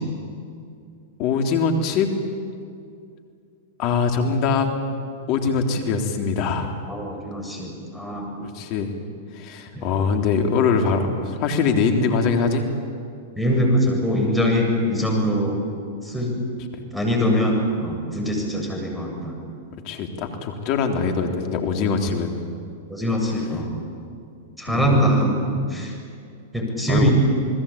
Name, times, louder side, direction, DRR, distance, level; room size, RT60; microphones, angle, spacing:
voice 1, 1.2-2.1 3.8-4.7 5.3-6.7 8.4-8.9 9.3-12.7 19.8-22.3 24.7-24.9 26.8-27.1, left 5 dB, 45° left, 4 dB, 3.7 m, -22 dB
voice 2, 6.9-8.3 9.7-9.9 13.4-15.6 16.0-16.4 16.9-19.3 22.9-23.8 24.6-25.9 26.5-27.1, equal, ahead, -1 dB, 7.6 m, -22 dB
29.0 x 20.0 x 8.9 m, 2.4 s
hypercardioid pair, 105°, 0 cm